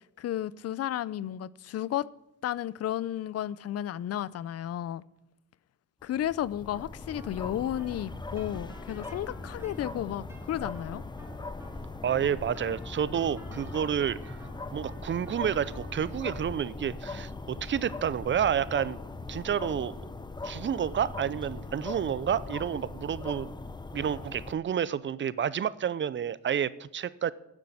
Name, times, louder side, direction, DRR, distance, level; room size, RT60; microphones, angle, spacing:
voice 1, 0.2-2.1 2.4-5.0 6.0-11.0, left 11 dB, 55° left, 0.5 m, -33 dB
sound 1, 6.0-24.5, left 3 dB, 15° left, 0.7 m, -40 dB
sound 2, 7.0-24.2, right 1 dB, 10° right, 2.6 m, -54 dB
voice 2, 12.0-14.4 14.7-19.0 19.3-19.9 20.4-23.5 23.9-27.3, right 8 dB, 40° right, 0.5 m, -30 dB
9.9 x 7.6 x 8.5 m
cardioid pair, 90°, 30 cm